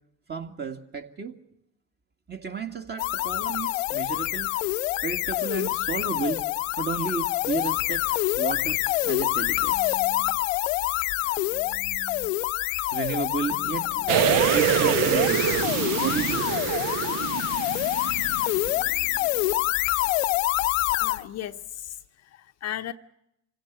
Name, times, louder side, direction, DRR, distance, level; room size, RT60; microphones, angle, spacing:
voice 1, 0.3-1.4 2.3-4.5 5.0-6.5 6.8-8.0 8.3-10.4 11.4-12.3 12.9-14.3 14.5-17.0, right 5 dB, 25° right, 2.2 m, -33 dB
sound 1, 3.0-21.2, left 20 dB, 70° left, 0.8 m, -26 dB
sound 2, 14.1-18.9 19.2-19.3, right 9 dB, 55° right, 1.2 m, -25 dB
voice 2, 20.9-22.9, left 12 dB, 40° left, 0.8 m, -36 dB
26.5 x 16.5 x 8.3 m
hypercardioid pair, 75°, 39 cm